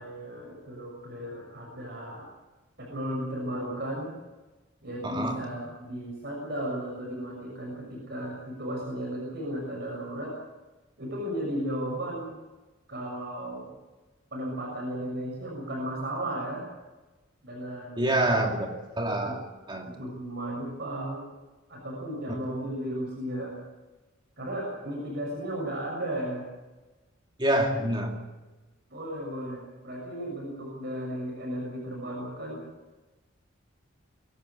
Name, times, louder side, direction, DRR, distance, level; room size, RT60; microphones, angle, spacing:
voice 1, 0.0-2.3 2.8-4.1 4.8-10.4 11.0-12.4 12.9-13.7 14.3-16.6 17.4-18.4 19.2-19.3 19.8-21.2 21.7-23.5 24.4-26.5 28.9-32.6, right 1 dB, 55° right, -2 dB, 6.6 m, -35 dB
voice 2, 5.0-5.4 18.0-18.7 19.0-19.9 27.4-28.1, right 1 dB, 25° right, 2 dB, 2.7 m, -26 dB
23.0 x 12.0 x 9.6 m, 1.1 s
head